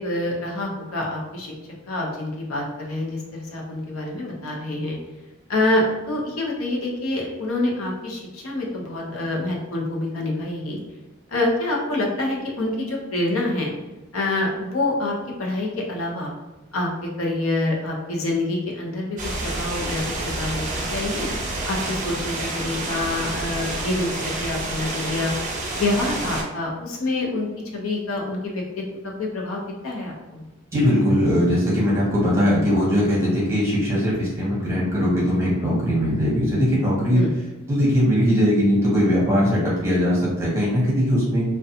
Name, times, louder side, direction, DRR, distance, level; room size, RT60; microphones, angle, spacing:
voice 1, 0.0-1.5 1.9-5.0 5.5-10.8 11.3-13.7 14.1-16.3 16.7-21.3 21.7-24.1 24.4-25.3 25.7-28.8 29.2-30.4 37.1-37.3, left 2 dB, 85° left, -1 dB, 0.6 m, -26 dB
sound 1, 19.2-26.4, right 2 dB, 40° right, 0.5 m, -29 dB
voice 2, 30.7-37.2 37.7-41.4, equal, 15° right, -6 dB, 0.9 m, -20 dB
2.4 x 2.2 x 2.7 m, 1.1 s
head